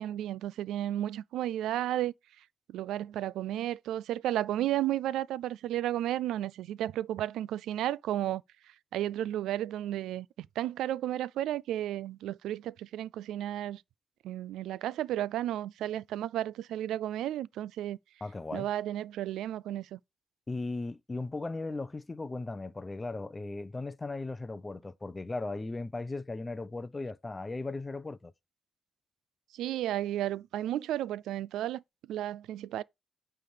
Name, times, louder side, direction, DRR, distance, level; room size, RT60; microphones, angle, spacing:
voice 1, 0.0-2.1 2.7-8.4 8.9-13.8 14.2-18.0 18.5-20.0 29.5-31.8 32.1-32.8, right 12 dB, 85° right, 0.3 m, -33 dB
voice 2, 18.2-18.7 20.5-28.3, left 3 dB, 20° left, 0.7 m, -37 dB
9.1 x 3.5 x 4.9 m
cardioid pair, 90°, 0 cm